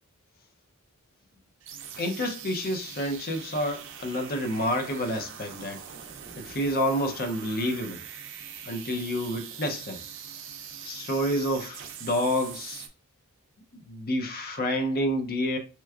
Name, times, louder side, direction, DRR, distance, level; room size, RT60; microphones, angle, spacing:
sound 1, 1.6-12.9, right 8 dB, 60° right, 0.5 m, -43 dB
voice 1, 2.0-5.8 6.4-8.0 8.6-10.0 10.8-12.9 13.7-15.6, equal, 45° left, 0.6 m, -29 dB
3.3 x 3.0 x 2.3 m
head